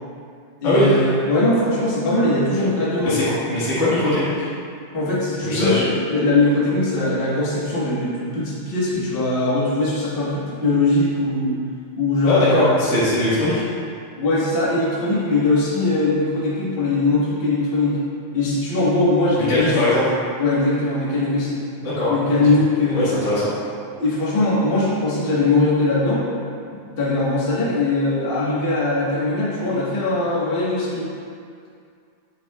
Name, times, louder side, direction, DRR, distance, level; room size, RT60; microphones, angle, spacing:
voice 1, 0.6-3.2 4.9-11.6 12.0-12.7 14.2-18.0 18.3-19.8 20.4-21.6 22.1-23.2 24.0-26.2 26.7-31.1, left 2 dB, 65° left, -8 dB, 0.5 m, -21 dB
voice 2, 3.0-4.5 5.4-5.8 12.2-13.6 19.4-20.0 21.8-22.1 22.9-23.5, left 1 dB, 35° left, -11 dB, 1.2 m, -20 dB
8.3 x 7.5 x 2.3 m, 2.3 s
omnidirectional pair, 3.5 m